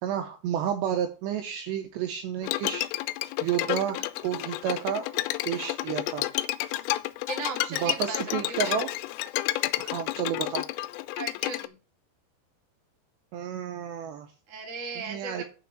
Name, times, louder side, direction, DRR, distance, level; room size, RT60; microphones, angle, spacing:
voice 1, 0.0-2.9 3.4-6.3 7.8-8.9 9.8-10.7 13.3-14.3 15.0-15.4, right 9 dB, 80° right, 6 dB, 2.6 m, -31 dB
Bowed string instrument, 2.4-11.7, left 17 dB, 85° left, 3.2 m, -30 dB
voice 2, 7.3-8.2 8.5-8.8 11.1-11.7 14.5-15.4, right 4 dB, 40° right, 1 dB, 1.1 m, -36 dB
7.1 x 5.8 x 7.4 m, 0.35 s
omnidirectional pair, 5.7 m